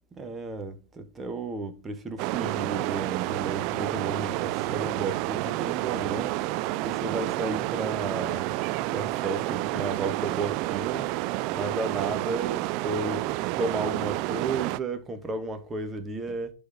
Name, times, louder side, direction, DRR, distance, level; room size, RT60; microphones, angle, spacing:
voice 1, 0.2-6.3 6.8-8.5 8.9-11.1 11.5-13.3 13.6-16.5, right 3 dB, 20° right, 1.4 m, -33 dB
sound 1, 2.2-14.8, right 18 dB, 45° right, 0.3 m, -30 dB
11.0 x 4.1 x 4.1 m
hypercardioid pair, 105°, 0 cm